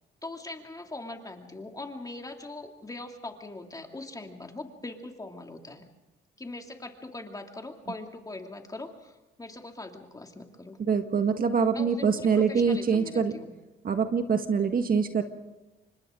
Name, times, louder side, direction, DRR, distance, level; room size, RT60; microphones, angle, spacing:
voice 1, 0.2-5.8 6.4-10.8 11.7-13.5, left 2 dB, 20° left, 3 dB, 2.7 m, -41 dB
voice 2, 10.9-13.3 13.8-15.2, right 6 dB, 45° right, 7 dB, 1.7 m, -24 dB
28.5 x 24.5 x 3.8 m, 1.1 s
cardioid pair, 90°, 20 cm